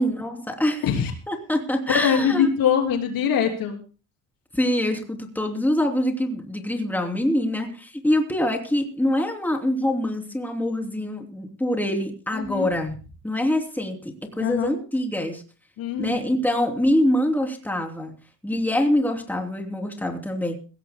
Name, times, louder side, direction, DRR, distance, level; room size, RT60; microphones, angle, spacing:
voice 1, 0.0-0.8 1.3-2.5 4.5-12.9 13.2-14.0 14.4-15.4 16.0-18.1 18.4-20.6, left 1 dB, 5° left, 2 dB, 3.1 m, -24 dB
voice 2, 1.9-3.8 12.3-12.7 14.4-14.7 15.8-16.2, left 7 dB, 85° left, 3 dB, 3.4 m, -23 dB
22.0 x 16.5 x 2.2 m, 0.35 s
cardioid pair, 110°, 34 cm